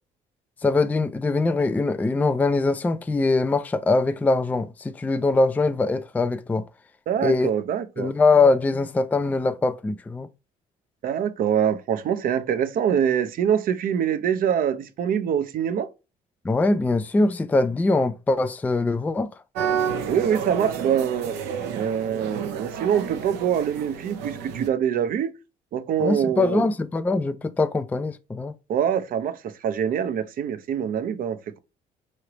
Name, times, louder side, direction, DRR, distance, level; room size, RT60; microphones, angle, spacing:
voice 1, 0.6-6.6 7.2-7.5 8.0-10.3 16.4-19.3 26.0-28.5, left 3 dB, 10° left, 0.3 m, -22 dB
voice 2, 7.1-8.1 11.0-15.9 20.1-21.4 21.7-25.3 25.7-26.7 28.7-31.6, right 8 dB, 55° right, 0.6 m, -24 dB
sound 1, 19.6-24.7, right 7 dB, 85° right, 0.8 m, -30 dB
4.8 x 3.2 x 2.9 m
cardioid pair, 110°, 17 cm